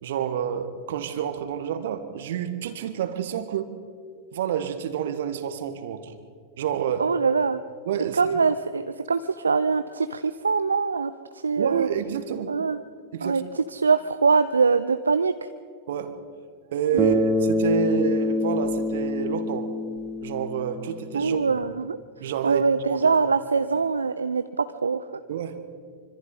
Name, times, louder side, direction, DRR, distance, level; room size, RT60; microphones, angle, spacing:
voice 1, 0.0-3.7 4.3-6.1 6.6-7.1 7.8-8.2 11.6-12.5 13.1-13.4 15.9-16.1 16.7-19.7 20.2-21.6 22.2-23.1 25.3-25.6, right 9 dB, 55° right, 10 dB, 1.7 m, -29 dB
voice 2, 7.0-7.6 8.2-11.9 12.5-12.8 13.2-15.5 16.9-17.2 21.1-22.0 22.4-25.0, right 5 dB, 75° right, 11 dB, 0.5 m, -23 dB
Bass guitar, 17.0-21.4, left 1 dB, 15° right, 1.9 m, -26 dB
25.5 x 25.5 x 4.2 m, 2.1 s
figure-of-eight pair, 90°, 0 cm